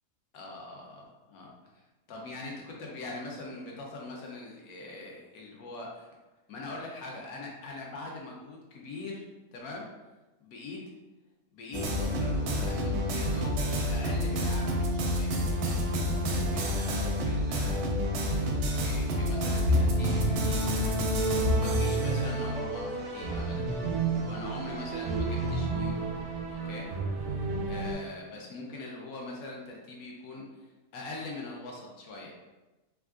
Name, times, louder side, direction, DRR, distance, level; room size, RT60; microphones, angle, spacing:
voice 1, 0.3-1.8 2.1-6.1 6.5-9.3 9.5-9.9 10.4-10.8 11.5-15.4 16.4-18.1 18.5-21.0 21.6-23.7 24.3-25.9 26.5-26.9 27.6-30.6 30.9-32.3, left 2 dB, 75° left, -1 dB, 1.1 m, -42 dB
sound 1, 11.7-25.6, equal, 85° right, 1.1 m, -30 dB
sound 2, 19.3-27.9, right 2 dB, 70° right, 0.6 m, -30 dB
3.5 x 2.4 x 2.3 m, 1.1 s
omnidirectional pair, 1.6 m